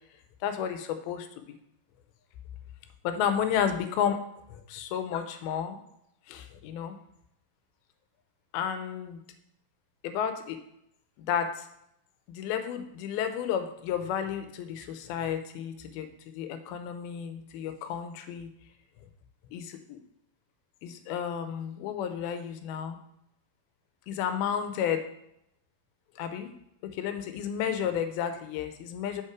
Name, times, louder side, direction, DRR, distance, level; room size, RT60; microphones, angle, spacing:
voice 1, 0.4-1.6 3.0-4.2 4.5-5.8 6.3-7.0 8.5-9.2 10.0-10.6 11.2-11.7 12.3-18.5 19.5-20.0 20.8-23.0 24.1-25.0 26.2-26.5 26.8-29.2, left 8 dB, 90° left, 9 dB, 2.5 m, -32 dB
5.7 x 5.3 x 4.7 m, 0.77 s
omnidirectional pair, 4.2 m